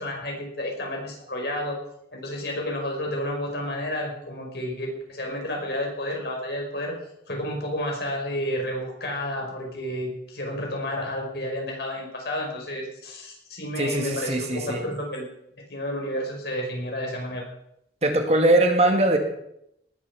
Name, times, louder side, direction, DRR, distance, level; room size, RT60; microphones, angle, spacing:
voice 1, 0.0-1.8 2.1-7.0 7.3-15.3 15.7-17.5, left 1 dB, 65° left, 1 dB, 5.2 m, -31 dB
voice 2, 13.8-14.8 18.0-19.2, right 1 dB, 35° right, 4 dB, 2.0 m, -21 dB
18.5 x 8.5 x 7.0 m, 0.77 s
head